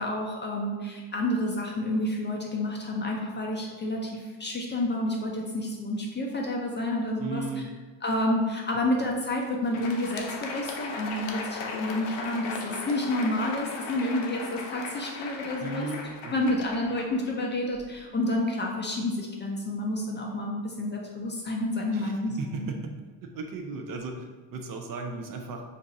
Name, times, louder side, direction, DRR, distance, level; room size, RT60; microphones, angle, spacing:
voice 1, 0.0-7.6 8.0-15.9 16.3-22.7, left 1 dB, 25° left, -1 dB, 0.4 m, -29 dB
voice 2, 7.2-7.7 9.0-9.1 15.6-16.6 21.9-22.9 23.2-25.7, right 3 dB, 45° right, 4 dB, 0.4 m, -36 dB
Crowd, 9.6-18.0, left 4 dB, 75° left, 0.6 m, -38 dB
2.6 x 2.4 x 3.9 m, 1.4 s
supercardioid pair, 85°, 48 cm